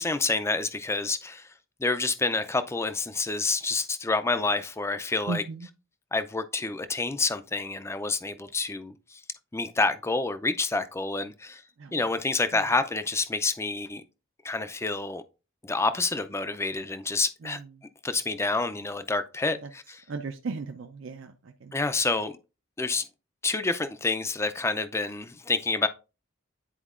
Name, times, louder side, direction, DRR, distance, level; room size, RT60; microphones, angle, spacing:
voice 1, 0.0-1.5 1.8-5.4 6.1-9.2 9.5-11.6 11.9-14.0 14.4-15.2 15.6-17.6 18.0-20.0 21.7-22.4 22.8-23.1 23.4-25.9, left 3 dB, 15° left, 0.4 m, -28 dB
voice 2, 5.3-5.7 11.8-12.0 12.5-12.6 17.4-17.7 19.6-19.7 20.1-21.7, right 3 dB, 65° right, 0.5 m, -36 dB
10.0 x 4.4 x 2.4 m
head